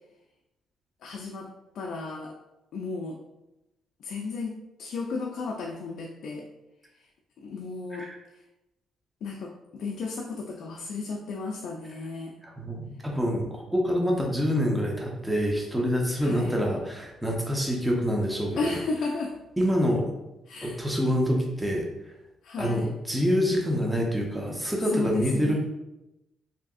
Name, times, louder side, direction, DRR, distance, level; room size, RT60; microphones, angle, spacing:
voice 1, 1.0-2.3 2.7-3.2 4.0-6.5 7.4-8.1 8.3-8.4 9.2-12.4 16.2-16.6 18.6-19.3 20.5-20.8 22.4-22.9 24.8-25.5, left 4 dB, 70° left, 0 dB, 0.3 m, -34 dB
voice 2, 12.4-18.8 19.6-20.1 20.6-21.8 22.6-25.5, equal, 5° right, -1 dB, 0.6 m, -26 dB
3.4 x 2.7 x 2.4 m, 0.94 s
cardioid pair, 90°, 0 cm